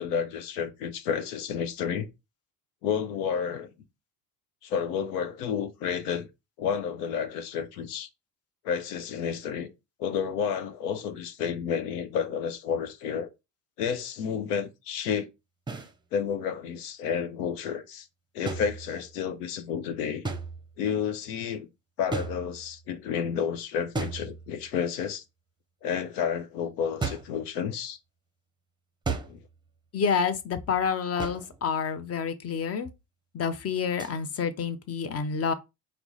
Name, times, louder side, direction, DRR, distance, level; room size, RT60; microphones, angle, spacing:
voice 1, 0.0-2.1 2.8-3.7 4.6-6.3 6.6-8.1 8.6-9.7 10.0-13.3 13.8-15.3 16.1-18.1 18.3-20.2 20.8-21.7 22.0-25.2 25.8-28.0 29.3-29.4, left 7 dB, 75° left, 0.8 m, -30 dB
sound 1, 15.7-15.9 18.5-19.3 20.2-20.9 22.1-22.9 23.9-24.8 27.0-27.4 29.0-29.6 31.2-31.6 34.0-34.2, right 4 dB, 10° right, 0.7 m, -35 dB
voice 2, 29.9-32.9 33.3-35.5, left 6 dB, 30° left, 0.7 m, -28 dB
4.5 x 2.1 x 3.9 m
hypercardioid pair, 70°, 46 cm